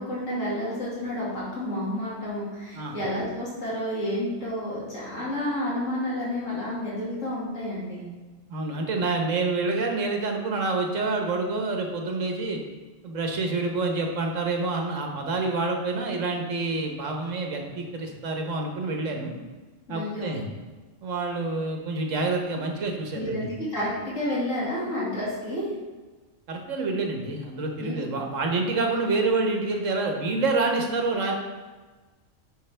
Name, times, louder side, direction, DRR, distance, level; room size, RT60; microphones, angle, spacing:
voice 1, 0.0-8.1 19.9-20.3 23.1-25.7 27.8-27.9, left 1 dB, 80° left, -7 dB, 2.5 m, -30 dB
voice 2, 8.5-12.6 13.0-19.3 19.9-20.4 21.0-23.4 26.5-31.3, right 3 dB, 75° right, 2 dB, 1.4 m, -27 dB
9.8 x 5.7 x 3.3 m, 1.3 s
omnidirectional pair, 1.3 m